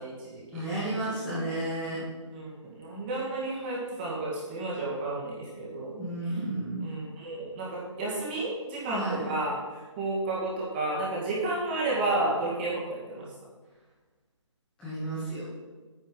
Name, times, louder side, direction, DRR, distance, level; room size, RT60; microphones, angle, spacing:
voice 1, 0.0-0.6 2.3-5.9 6.2-6.3 6.8-13.3, right 2 dB, 20° right, -6 dB, 2.2 m, -32 dB
voice 2, 0.5-2.0 5.9-6.9 8.9-9.2 14.8-15.5, right 1 dB, 5° left, -11 dB, 1.8 m, -32 dB
9.4 x 8.1 x 4.7 m, 1.3 s
hypercardioid pair, 170°, 16 cm